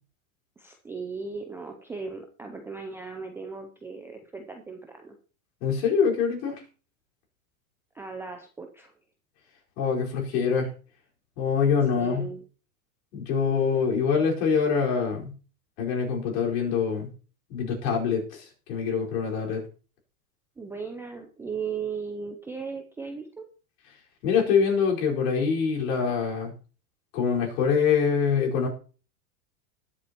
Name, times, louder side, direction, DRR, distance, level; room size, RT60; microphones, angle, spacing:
voice 1, 0.6-5.2 7.9-8.9 11.9-12.4 20.6-23.5, right 5 dB, 5° right, 3 dB, 0.4 m, -37 dB
voice 2, 5.6-6.6 9.8-10.7 11.4-12.2 13.1-15.3 15.8-17.1 17.5-19.6 24.2-26.5 27.1-28.7, left 6 dB, 55° left, -1 dB, 4.7 m, -24 dB
19.5 x 7.6 x 2.9 m, 0.37 s
supercardioid pair, 140°, 47 cm